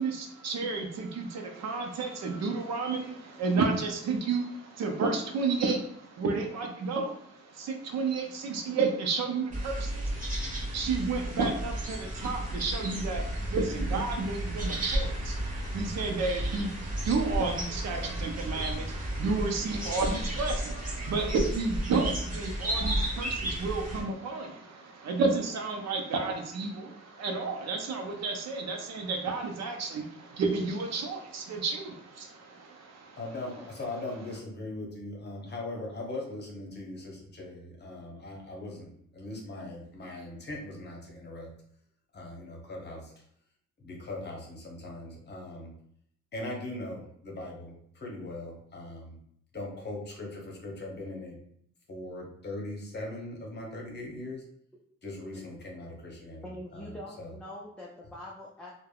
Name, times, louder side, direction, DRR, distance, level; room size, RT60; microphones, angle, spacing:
voice 1, 0.0-33.2, right 4 dB, 60° right, 2 dB, 0.6 m, -31 dB
sound 1, 9.5-24.0, right 1 dB, 30° right, 1.0 m, -33 dB
voice 2, 33.2-41.5 42.1-43.1 43.8-45.7 46.3-49.2 49.5-51.4 51.9-54.4 55.0-57.3, left 2 dB, 35° left, -1 dB, 0.9 m, -40 dB
voice 3, 56.4-58.7, left 1 dB, 5° left, -4 dB, 0.4 m, -44 dB
3.3 x 2.1 x 2.3 m, 0.67 s
cardioid pair, 90°, 30 cm